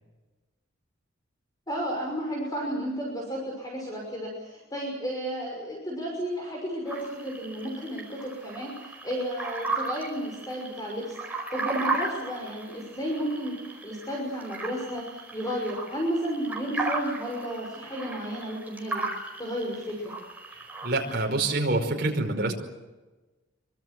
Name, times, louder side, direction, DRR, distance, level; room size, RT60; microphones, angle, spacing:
voice 1, 1.7-19.1 19.4-20.1, equal, 20° left, -1 dB, 5.9 m, -33 dB
sound 1, 6.9-21.3, right 2 dB, 10° right, 4.7 m, -36 dB
voice 2, 20.8-22.5, right 2 dB, 50° right, 1 dB, 5.1 m, -26 dB
25.0 x 24.5 x 7.7 m, 1.2 s
head